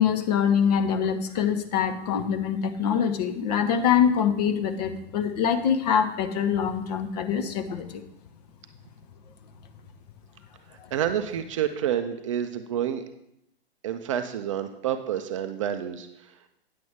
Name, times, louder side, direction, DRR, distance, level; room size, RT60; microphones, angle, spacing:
voice 1, 0.0-8.0, left 8 dB, 40° left, 9 dB, 0.8 m, -24 dB
voice 2, 10.7-13.0 13.8-16.5, right 10 dB, 30° right, 8 dB, 0.4 m, -29 dB
9.4 x 7.6 x 3.6 m, 0.81 s
figure-of-eight pair, 120°, 32 cm